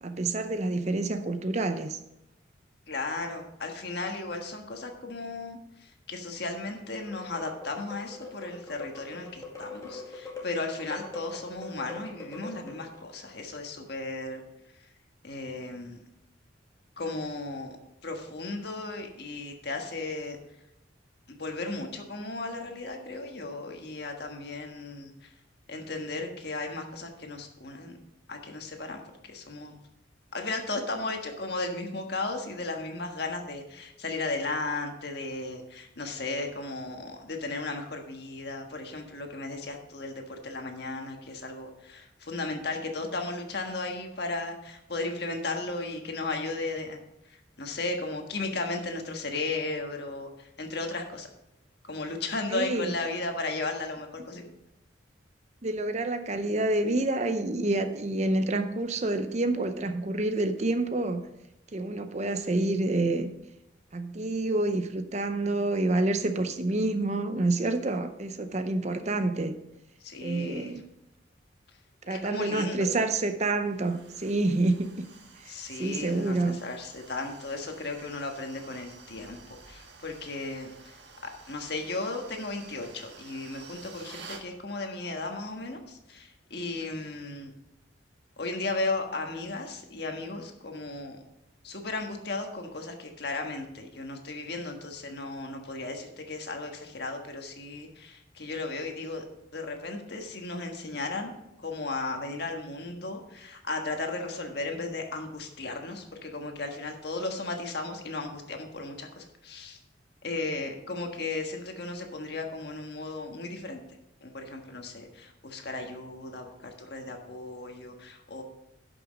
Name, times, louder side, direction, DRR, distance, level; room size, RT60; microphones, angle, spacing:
voice 1, 0.0-2.0 52.5-52.9 55.6-61.2 61.7-63.3 63.9-69.6 70.2-70.8 72.0-74.9 75.4-76.6, right 2 dB, 35° right, 8 dB, 0.6 m, -28 dB
voice 2, 2.9-14.4 14.8-14.9 15.2-16.0 17.0-17.8 18.0-20.4 21.3-25.3 25.7-28.0 28.3-29.8 30.3-47.0 47.2-51.3 51.8-54.5 70.0-70.8 72.1-73.0 75.4-80.9 81.4-87.5 88.4-91.2 91.6-99.2 99.5-101.3 101.6-109.8 110.2-113.8 114.2-118.4, left 2 dB, 55° left, 3 dB, 1.5 m, -35 dB
sound 1, 7.0-13.1, left 3 dB, 20° left, 2.0 m, -43 dB
sound 2, 73.6-84.5, right 4 dB, 65° right, 1.4 m, -51 dB
11.0 x 6.1 x 5.2 m, 0.87 s
head